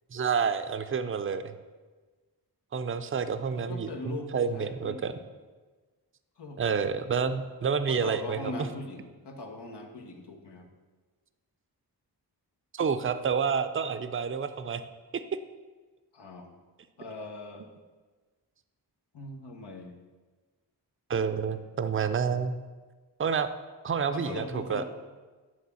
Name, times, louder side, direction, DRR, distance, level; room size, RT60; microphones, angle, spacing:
voice 1, 0.1-1.5 2.7-5.1 6.6-8.7 12.7-14.8 15.1-15.2 21.1-22.6 23.2-23.5 23.8-24.8, right 6 dB, 30° right, 10 dB, 0.5 m, -29 dB
voice 2, 3.5-5.3 6.4-6.6 7.9-10.7 16.1-16.5 17.0-17.7 19.1-20.0 21.3-21.6 24.1-24.8, left 2 dB, 80° left, 2 dB, 1.2 m, -40 dB
9.3 x 3.6 x 7.0 m, 1.3 s
wide cardioid pair, 75°, 40 cm